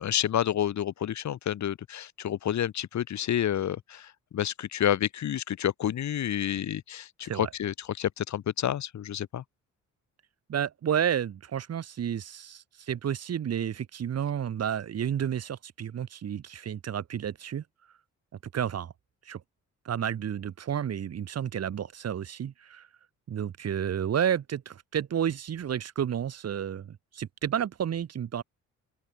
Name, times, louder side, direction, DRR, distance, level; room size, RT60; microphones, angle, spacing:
voice 1, 0.0-9.4, left 10 dB, 65° left, 6.0 m, -29 dB
voice 2, 10.5-17.6 18.5-18.9 19.3-19.4 19.8-22.9 23.3-28.4, right 9 dB, 55° right, 2.7 m, -31 dB
open air
cardioid pair, 90°, 30 cm